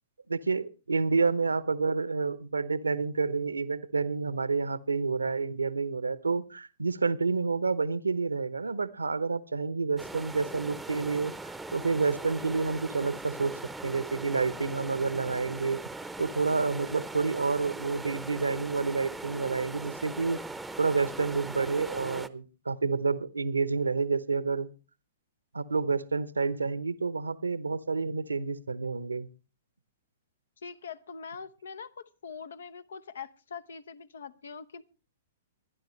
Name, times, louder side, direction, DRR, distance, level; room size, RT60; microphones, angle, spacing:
voice 1, 0.3-11.3 11.7-15.8 16.2-20.4 20.8-24.7 25.5-29.3, right 4 dB, 85° right, 17 dB, 0.9 m, -29 dB
sound 1, 10.0-22.3, right 2 dB, 5° right, 0.8 m, -40 dB
voice 2, 30.6-34.8, left 6 dB, 70° left, 18 dB, 0.9 m, -43 dB
23.5 x 10.5 x 3.2 m, 0.33 s
figure-of-eight pair, 115°, 0 cm